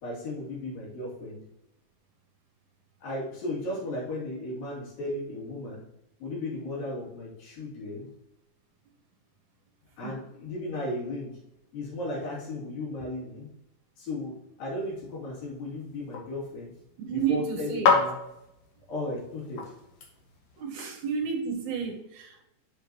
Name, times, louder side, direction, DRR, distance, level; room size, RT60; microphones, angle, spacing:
voice 1, 0.0-1.4 3.0-5.8 6.2-8.1 10.0-11.4 11.7-13.5 14.0-16.7 17.1-18.1 18.9-19.7 20.8-20.9, left 2 dB, 85° left, -5 dB, 4.4 m, -35 dB
sound 1, 14.8-20.6, left 5 dB, 60° left, 1.9 m, -32 dB
voice 2, 17.0-17.9 20.6-22.4, right 6 dB, 70° right, 3 dB, 2.2 m, -31 dB
7.3 x 7.0 x 3.0 m, 0.85 s
omnidirectional pair, 3.9 m